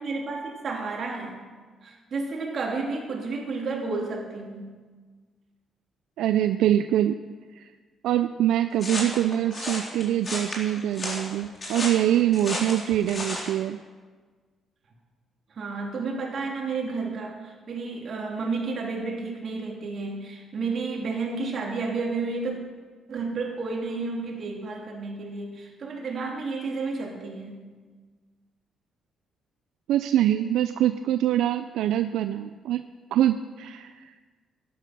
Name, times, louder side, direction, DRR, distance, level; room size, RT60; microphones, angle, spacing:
voice 1, 0.0-1.4 1.8-4.7 15.5-22.6 23.1-27.6, right 3 dB, 55° right, -1 dB, 3.2 m, -31 dB
voice 2, 6.2-7.2 7.6-7.7 8.0-13.8 29.9-32.8 33.1-34.1, right 12 dB, 85° right, 10 dB, 0.4 m, -24 dB
sound 1, 8.8-13.5, left 2 dB, 40° left, 3.7 m, -33 dB
12.5 x 10.0 x 6.1 m, 1.4 s
cardioid pair, 90°, 0 cm